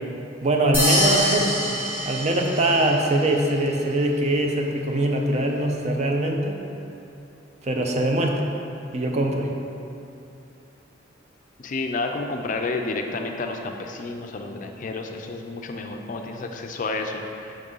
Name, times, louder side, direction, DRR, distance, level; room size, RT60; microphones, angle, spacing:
voice 1, 0.4-6.6 7.6-8.5 8.9-9.5, right 1 dB, 40° right, 2 dB, 0.5 m, -23 dB
sound 1, 0.7-3.0, equal, 10° right, 1.5 m, -24 dB
voice 2, 11.6-17.6, left 3 dB, 45° left, 4 dB, 0.4 m, -30 dB
6.4 x 3.7 x 5.4 m, 2.8 s
head